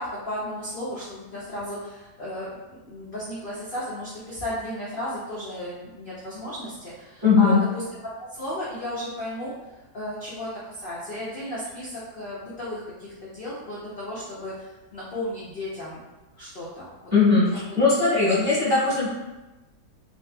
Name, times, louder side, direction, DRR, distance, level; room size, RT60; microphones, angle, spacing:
voice 1, 0.0-2.5 2.8-7.8 8.3-9.5 9.9-16.0 16.4-16.9, left 1 dB, 60° left, -7 dB, 0.5 m, -34 dB
voice 2, 7.2-7.6 17.1-19.1, left 4 dB, 20° right, -10 dB, 0.8 m, -19 dB
4.0 x 2.6 x 2.2 m, 1.1 s
omnidirectional pair, 1.8 m